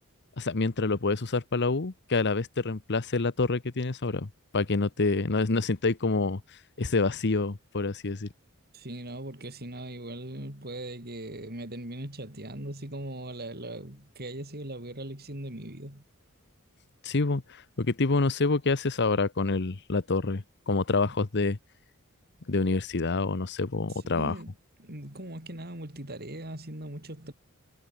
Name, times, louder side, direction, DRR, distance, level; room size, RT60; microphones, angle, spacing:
voice 1, 0.4-6.4 6.8-8.3 17.0-21.6 22.5-24.3, left 3 dB, 50° left, 1.0 m, -27 dB
voice 2, 8.7-16.0 23.9-24.5 24.8-27.3, right 1 dB, 45° right, 6.4 m, -39 dB
head